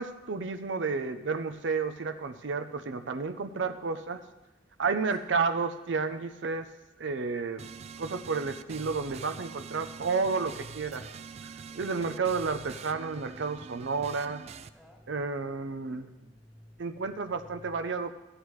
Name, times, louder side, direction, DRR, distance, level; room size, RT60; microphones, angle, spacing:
voice 1, 0.0-4.2 4.8-6.7 7.0-7.7 8.0-11.0 11.7-14.4 15.1-16.1 16.8-18.1, right 4 dB, 85° right, 8 dB, 0.6 m, -31 dB
sound 1, 7.6-14.7, right 5 dB, 35° right, 0.3 m, -44 dB
voice 2, 11.7-12.0 13.5-13.8 14.7-15.2 16.0-17.0, equal, ahead, -2 dB, 1.8 m, -57 dB
14.0 x 9.8 x 3.2 m, 1.0 s
head